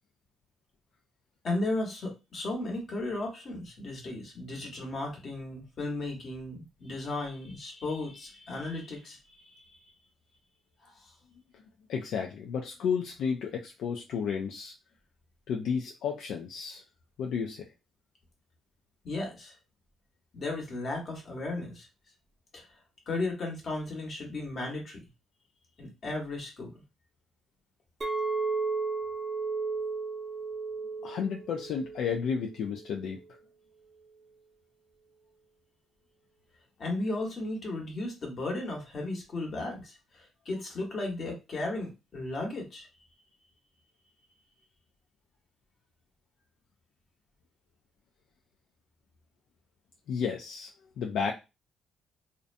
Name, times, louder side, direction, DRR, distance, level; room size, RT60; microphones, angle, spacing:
voice 1, 1.4-9.8 10.8-11.1 19.0-19.5 20.3-21.9 22.5-22.7 23.1-25.0 25.8-26.8 36.8-42.9, left 2 dB, 50° left, 1 dB, 1.1 m, -35 dB
voice 2, 11.9-14.7 15.5-16.8 17.2-17.7 31.0-33.2 50.1-50.7 51.0-51.3, left 6 dB, 80° left, 1 dB, 0.3 m, -32 dB
Chink clink, 28.0-32.4 32.7-33.1, right 4 dB, 30° right, 0.5 m, -34 dB
2.5 x 2.1 x 2.5 m, 0.26 s
cardioid pair, 90°, 0 cm